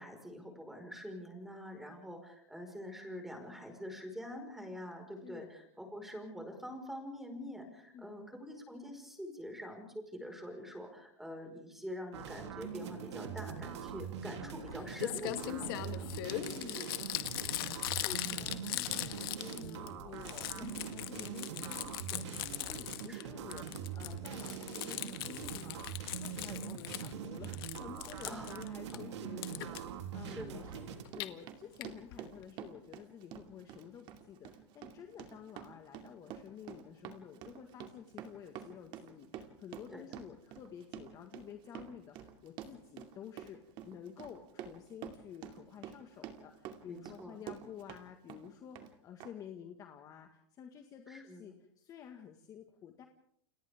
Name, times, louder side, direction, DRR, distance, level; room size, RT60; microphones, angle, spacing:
voice 1, 0.0-16.1 20.6-20.7 23.1-23.5 28.2-29.0 30.3-30.7 39.9-40.0 46.8-47.4 51.1-51.5, equal, ahead, 3 dB, 5.0 m, -46 dB
sound 1, 12.1-31.0, right 7 dB, 75° right, 3.1 m, -43 dB
Crumpling crinkling, 14.7-14.8 15.0-19.9 20.2-23.2 23.5-27.1 27.4-29.0 29.4-29.8 30.9-31.3 31.8-31.9 32.1-32.2 32.4-32.5, left 16 dB, 55° left, 1.8 m, -40 dB
voice 2, 16.3-43.6 43.8-53.0, left 8 dB, 25° left, 5 dB, 1.7 m, -51 dB
Run, 29.7-29.8 30.3-48.0 48.3-48.9 49.2-49.3, right 10 dB, 35° right, 2.5 m, -48 dB
29.5 x 28.5 x 3.6 m, 0.69 s
supercardioid pair, 155°, 15 cm